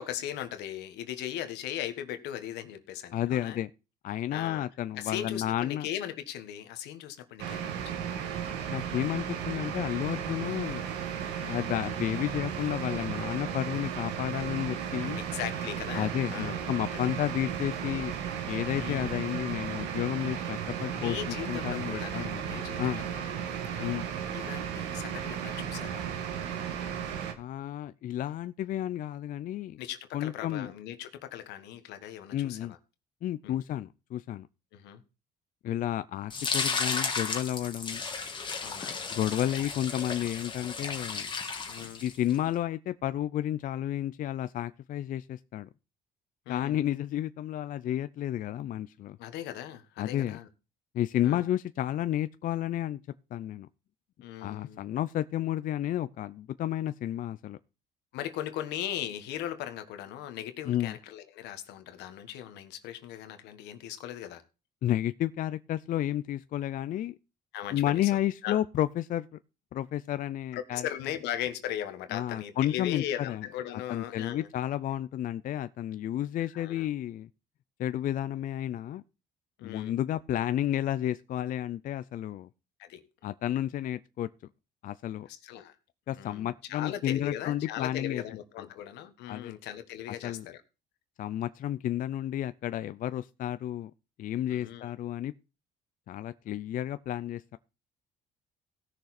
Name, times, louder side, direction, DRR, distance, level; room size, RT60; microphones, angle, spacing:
voice 1, 0.0-3.6 4.3-4.6 4.9-8.2 11.4-11.6 15.2-16.7 17.0-17.1 18.7-19.2 20.9-24.0 24.3-26.1 29.8-32.8 33.4-33.6 34.7-35.0 38.6-39.0 41.7-42.0 46.4-46.8 49.2-50.5 51.2-51.4 54.2-54.8 58.1-64.4 67.5-68.1 68.4-68.6 70.5-74.5 76.4-76.9 79.6-79.9 82.8-83.0 85.3-85.7 86.1-90.6 94.5-94.9, left 11 dB, 85° left, 1.5 m, -38 dB
voice 2, 3.1-3.7 4.0-5.9 8.7-10.9 11.5-15.2 15.9-18.1 18.5-23.0 23.8-24.1 27.4-29.8 30.1-30.7 32.3-32.7 33.2-34.5 35.6-38.0 39.1-41.3 42.0-45.7 46.5-49.2 50.0-50.4 50.9-53.0 53.3-53.7 54.4-57.6 60.6-61.0 64.8-67.2 67.7-69.4 69.7-70.9 72.1-73.5 73.9-77.3 77.8-79.0 79.6-82.5 83.2-84.3 84.8-85.3 86.1-88.2 88.6-88.7 89.3-89.6 90.2-90.5 91.2-93.9 94.2-95.3 96.1-97.6, left 12 dB, 55° left, 0.5 m, -31 dB
sound 1, 7.4-27.3, right 8 dB, 90° right, 1.8 m, -35 dB
sound 2, 36.3-42.4, left 4 dB, 30° left, 1.8 m, -34 dB
16.5 x 6.5 x 4.2 m
cardioid pair, 110°, 17 cm